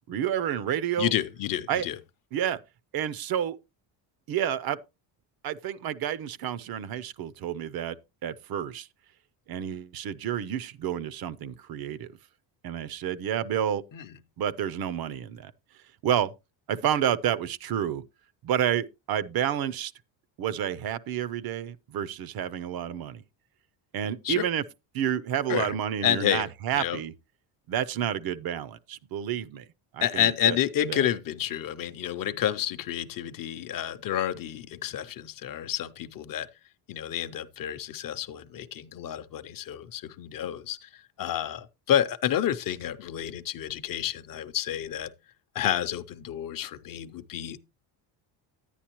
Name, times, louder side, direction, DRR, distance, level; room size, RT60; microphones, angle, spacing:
voice 1, 0.1-1.1 1.7-1.9 2.3-2.6 2.9-3.6 4.3-4.8 5.4-8.0 8.2-8.9 9.5-12.1 12.6-13.8 14.4-15.5 16.0-16.3 16.7-18.0 18.4-19.9 20.4-23.2 23.9-24.6 24.9-27.1 27.7-29.7 29.9-30.6 30.9-31.0, right 10 dB, 50° right, 0.6 m, -29 dB
voice 2, 1.0-2.0 13.9-14.1 24.2-24.4 25.5-25.7 26.0-26.5 26.7-27.0 30.0-36.5 36.9-45.1 45.5-47.6, left 11 dB, 45° left, 0.6 m, -29 dB
10.0 x 9.8 x 2.9 m
cardioid pair, 145°, 47 cm